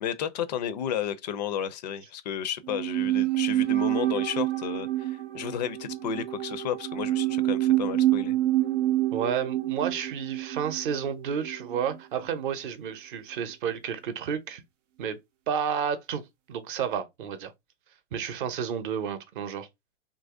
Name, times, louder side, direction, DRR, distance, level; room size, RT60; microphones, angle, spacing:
voice 1, 0.0-8.4, left 9 dB, 35° left, 0.4 m, -32 dB
sound 1, 2.6-12.0 12.2-12.3, right 14 dB, 80° right, 0.6 m, -27 dB
voice 2, 9.1-14.6 15.0-15.2 15.5-16.2 16.5-17.5 18.1-19.7, right 7 dB, 45° right, 0.7 m, -31 dB
2.9 x 2.6 x 3.6 m
hypercardioid pair, 130°, 37 cm